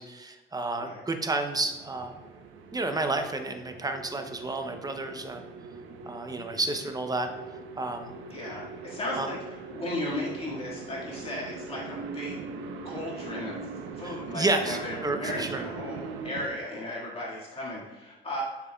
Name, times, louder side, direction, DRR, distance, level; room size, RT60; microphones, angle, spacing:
voice 1, 0.0-2.2 2.7-5.4 6.1-7.3 7.8-8.2 9.1-9.3 14.0-15.6, right 2 dB, 20° right, 6 dB, 0.7 m, -31 dB
sound 1, 1.5-16.5, right 4 dB, 90° right, 0.7 m, -41 dB
voice 2, 8.3-12.4 12.8-13.7 13.9-18.5, left 1 dB, 30° left, -6 dB, 1.9 m, -36 dB
7.6 x 5.8 x 2.3 m, 1.2 s
cardioid pair, 90°, 20 cm